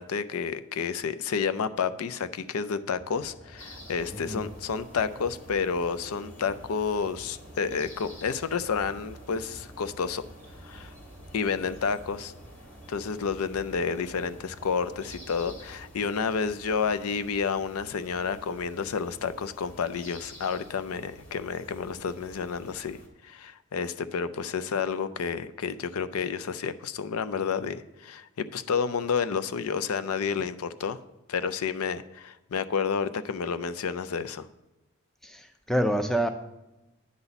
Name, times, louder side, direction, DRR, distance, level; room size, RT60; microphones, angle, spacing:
voice 1, 0.0-10.2 10.6-10.9 11.3-12.3 12.9-23.0 23.2-31.0 31.3-34.5, left 6 dB, 90° left, 13 dB, 0.5 m, -30 dB
sound 1, 3.0-15.9, right 1 dB, 15° right, 1.3 m, -51 dB
sound 2, 3.6-23.1, equal, 65° left, 1.9 m, -49 dB
voice 2, 4.1-4.4 35.2-36.3, equal, ahead, 7 dB, 0.4 m, -27 dB
9.6 x 4.1 x 6.8 m, 0.98 s
head